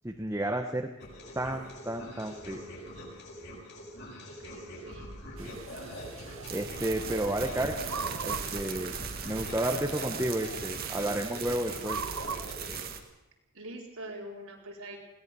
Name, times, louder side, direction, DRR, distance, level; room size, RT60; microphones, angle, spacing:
voice 1, 0.0-0.9 1.3-2.6 5.4-5.5 6.5-7.8 8.2-9.0 9.2-12.0, right 1 dB, 15° right, 3 dB, 1.1 m, -32 dB
sound 1, 1.0-12.8, equal, 50° left, 6.7 m, -44 dB
voice 2, 4.2-5.1 13.5-15.0, right 1 dB, 85° right, -1 dB, 4.6 m, -44 dB
sound 2, 5.4-12.6, right 5 dB, 65° right, 0.7 m, -41 dB
sound 3, 6.4-13.0, right 7 dB, 45° right, 1.8 m, -39 dB
20.5 x 18.0 x 7.0 m, 0.99 s
head